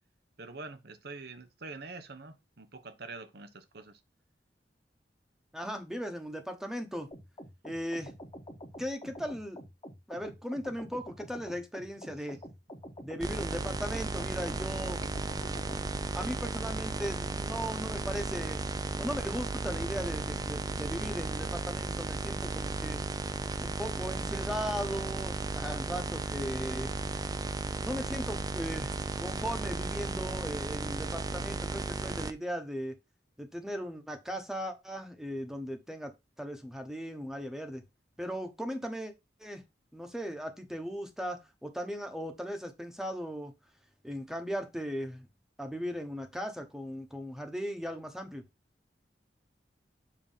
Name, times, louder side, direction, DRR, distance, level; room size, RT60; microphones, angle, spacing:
voice 1, 0.4-4.0, right 3 dB, 65° right, 1.0 m, -45 dB
voice 2, 5.5-7.1 7.6-8.1 8.8-9.6 10.1-12.4 13.0-15.1 16.1-18.6 19.0-23.0 23.6-26.9 27.8-33.0 33.4-36.1 36.4-37.8 38.2-39.1 39.4-39.6 39.9-43.5 44.0-45.3 45.6-48.4, equal, 5° right, 1.1 m, -37 dB
sound 1, 7.1-15.8, equal, 25° left, 1.4 m, -47 dB
sound 2, 13.2-32.3, right 3 dB, 20° right, 0.5 m, -35 dB
7.3 x 3.0 x 5.6 m
head